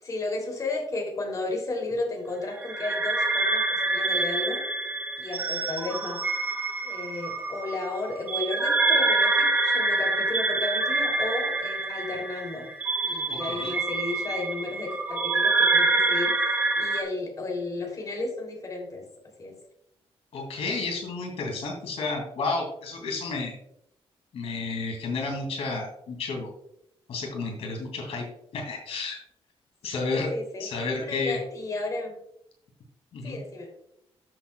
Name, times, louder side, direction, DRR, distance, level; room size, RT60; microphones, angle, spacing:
voice 1, 0.0-4.6 5.2-6.2 6.8-12.7 13.0-19.0 19.4-19.6 29.9-30.7 31.0-32.1 33.2-33.7, left 2 dB, 35° left, 0 dB, 2.9 m, -33 dB
sound 1, 2.6-17.0, right 3 dB, 15° right, 1.2 m, -26 dB
voice 2, 13.3-13.7 20.3-23.5 24.3-26.5 27.1-28.3 28.5-29.2 29.8-30.3 30.6-31.4 33.1-33.4, left 3 dB, 75° left, 1 dB, 2.4 m, -31 dB
13.0 x 7.7 x 2.3 m, 0.75 s
cardioid pair, 130°, 10 cm